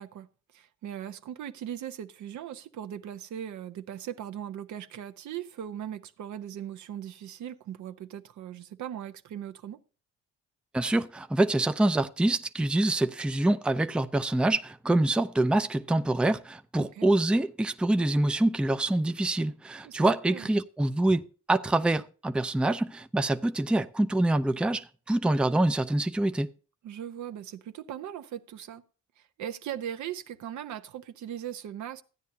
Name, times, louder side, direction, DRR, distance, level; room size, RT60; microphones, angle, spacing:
voice 1, 0.0-9.8 16.8-17.1 19.8-20.5 26.8-28.8 29.2-32.0, right 10 dB, 70° right, 0.9 m, -39 dB
voice 2, 10.7-26.5, right 2 dB, 5° right, 0.5 m, -26 dB
14.5 x 9.5 x 2.7 m
cardioid pair, 90°, 30 cm